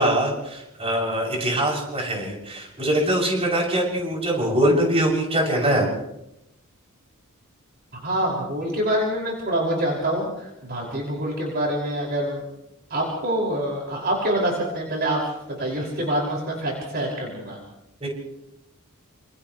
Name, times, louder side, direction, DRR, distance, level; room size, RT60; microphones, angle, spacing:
voice 1, 0.0-5.9 18.0-18.1, right 1 dB, 30° right, -1 dB, 7.4 m, -23 dB
voice 2, 8.0-12.4 12.9-15.2 15.5-17.6, right 1 dB, 45° right, -2 dB, 6.0 m, -26 dB
29.5 x 28.5 x 3.3 m, 0.85 s
head